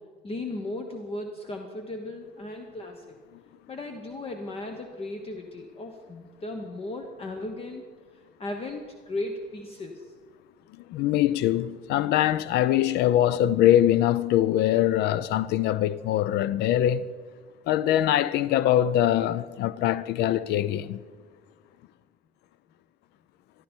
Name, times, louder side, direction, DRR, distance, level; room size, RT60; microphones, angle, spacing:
voice 1, 0.2-3.2 3.7-7.8 8.4-8.8 9.1-10.0, left 2 dB, 35° left, 1.2 m, -36 dB
voice 2, 10.9-17.1 17.7-21.0, left 12 dB, 80° left, 0.5 m, -23 dB
14.5 x 12.5 x 4.5 m
cardioid pair, 110°, 17 cm